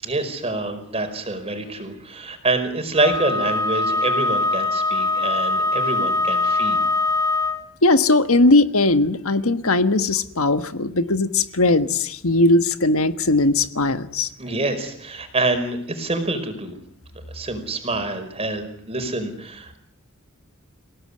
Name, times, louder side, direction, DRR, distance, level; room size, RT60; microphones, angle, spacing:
voice 1, 0.0-6.8 14.4-16.7 17.3-19.8, right 2 dB, 30° right, 8 dB, 5.0 m, -26 dB
Wind instrument woodwind instrument, 2.9-7.7, left 2 dB, 15° left, 1.6 m, -22 dB
voice 2, 7.8-14.3, left 2 dB, 75° left, 10 dB, 1.5 m, -19 dB
28.5 x 17.5 x 9.9 m, 0.69 s
head